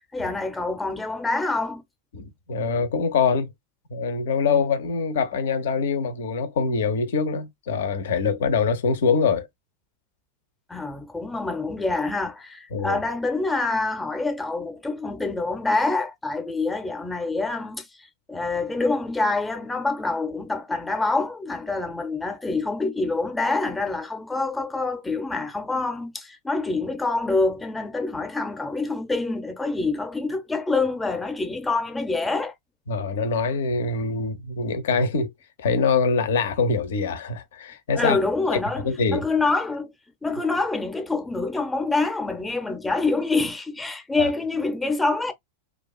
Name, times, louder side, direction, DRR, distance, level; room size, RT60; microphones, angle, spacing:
voice 1, 0.1-1.8 10.7-17.9 18.3-32.5 37.9-39.9 40.2-45.3, left 3 dB, 10° left, 0.6 m, -26 dB
voice 2, 2.1-3.5 3.9-9.5 12.7-13.0 32.9-35.3 35.6-38.2 38.5-38.6 38.8-39.3 44.2-44.3, left 5 dB, 60° left, 0.5 m, -24 dB
2.4 x 2.3 x 2.3 m
figure-of-eight pair, 90°, 0 cm